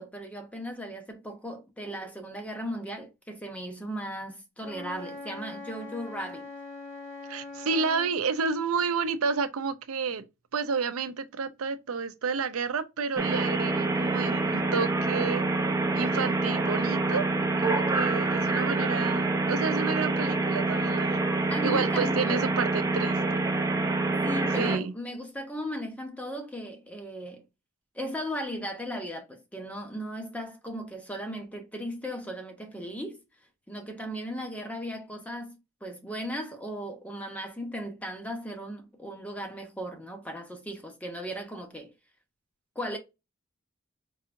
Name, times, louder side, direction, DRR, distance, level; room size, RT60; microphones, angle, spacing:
voice 1, 0.0-6.5 21.5-22.5 24.2-27.4 27.9-33.2 33.7-41.9 42.8-43.0, equal, 5° left, 0.8 m, -37 dB
Wind instrument woodwind instrument, 4.6-8.2, left 3 dB, 65° left, 1.4 m, -42 dB
voice 2, 7.3-10.2 10.5-15.4 15.9-17.3 17.6-21.2 21.6-23.4 24.6-24.9, right 5 dB, 80° right, 0.5 m, -30 dB
sound 1, 13.2-24.8, right 2 dB, 15° right, 0.5 m, -26 dB
4.7 x 2.8 x 2.5 m
head